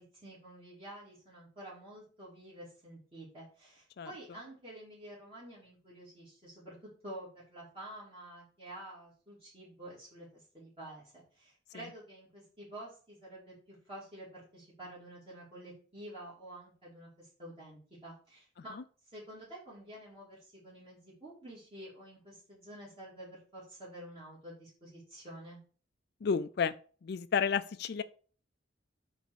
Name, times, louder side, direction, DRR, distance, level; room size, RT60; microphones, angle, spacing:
voice 1, 0.0-6.8 7.0-18.7 19.1-25.6, right 1 dB, 30° right, 2.7 m, -49 dB
voice 2, 26.2-26.7 27.0-28.0, left 6 dB, 55° left, 0.4 m, -31 dB
8.2 x 3.4 x 6.1 m
head